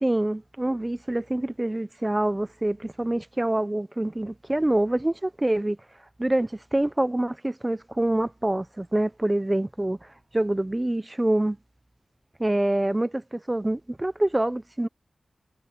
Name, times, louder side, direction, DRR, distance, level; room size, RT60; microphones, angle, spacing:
voice 1, 0.0-5.8 6.2-10.0 10.3-11.6 12.4-14.9, right 1 dB, 15° right, 0.6 m, -26 dB
wide cardioid pair, 135°, 0 cm